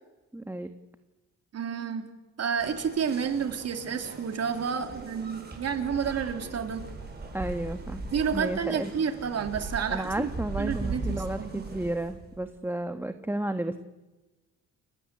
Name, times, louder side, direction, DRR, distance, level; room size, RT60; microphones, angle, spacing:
voice 1, 0.3-0.7 7.3-8.0 8.3-8.9 9.9-13.8, right 1 dB, 5° right, 8 dB, 1.4 m, -32 dB
voice 2, 1.5-2.0 2.4-6.8 8.1-10.3 10.6-11.7, right 6 dB, 55° right, 6 dB, 3.5 m, -30 dB
sound 1, 2.6-12.4, right 3 dB, 35° right, 7.5 m, -39 dB
30.0 x 13.5 x 9.8 m, 1.1 s
cardioid pair, 90°, 30 cm